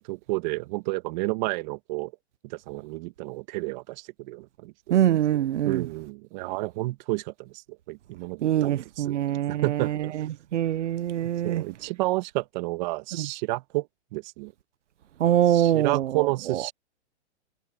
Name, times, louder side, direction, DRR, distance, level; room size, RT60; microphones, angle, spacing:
voice 1, 0.1-2.1 2.4-5.0 5.6-7.5 7.9-9.1 9.5-10.1 11.2-13.9 14.1-14.5 15.5-16.7, right 22 dB, 40° right, 2.1 m, -31 dB
voice 2, 4.9-5.8 8.4-9.9 10.5-11.6 13.2-13.3 15.2-16.7, right 11 dB, 85° right, 1.0 m, -24 dB
hypercardioid pair, 150°, 35 cm